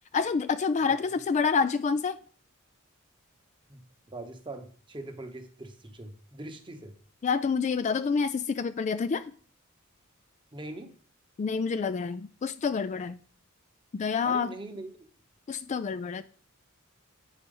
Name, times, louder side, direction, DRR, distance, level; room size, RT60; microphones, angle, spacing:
voice 1, 0.1-2.2 7.2-9.3 11.4-13.2 13.9-14.5 15.5-16.2, left 5 dB, 35° left, 0.3 m, -28 dB
voice 2, 4.1-6.9 10.5-10.9 14.2-14.9, right 2 dB, 20° right, 1.0 m, -42 dB
8.9 x 4.3 x 5.3 m
head